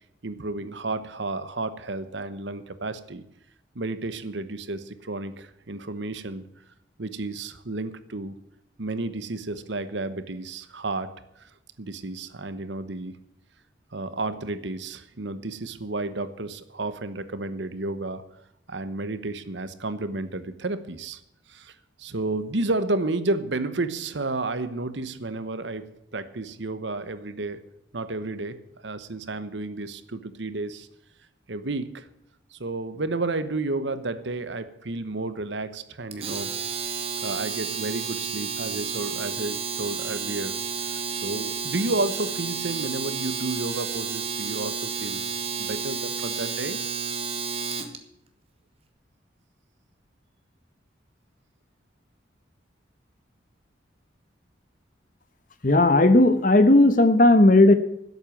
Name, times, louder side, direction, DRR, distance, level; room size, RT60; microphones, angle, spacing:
voice 1, 0.2-3.2 3.7-6.5 7.0-8.4 8.8-11.5 11.8-13.2 13.9-18.3 18.7-21.2 21.5-27.6 27.9-30.9 31.5-32.1 32.5-36.5 37.2-40.6 40.9-45.2 45.6-46.8, right 2 dB, 70° right, 13 dB, 1.1 m, -31 dB
Domestic sounds home sounds, 36.1-48.0, right 6 dB, 30° right, 1.4 m, -31 dB
voice 2, 55.6-57.7, left 2 dB, 45° left, 10 dB, 1.1 m, -15 dB
12.0 x 8.1 x 9.1 m, 0.80 s
head